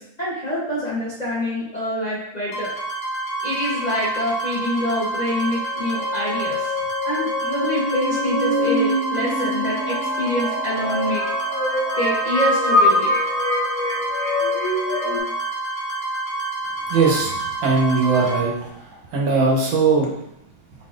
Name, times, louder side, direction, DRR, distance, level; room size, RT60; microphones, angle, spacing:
voice 1, 0.0-2.7 3.4-6.7 7.0-11.2 12.0-13.1, left 1 dB, 30° left, -8 dB, 0.9 m, -26 dB
sound 1, 2.5-18.4, right 2 dB, 75° left, 1.8 m, -28 dB
sound 2, 5.6-15.2, left 1 dB, 50° left, 1.5 m, -24 dB
voice 2, 16.9-18.8 19.1-20.1, right 4 dB, 80° right, -2 dB, 1.8 m, -20 dB
5.2 x 4.0 x 2.5 m, 0.78 s
omnidirectional pair, 2.0 m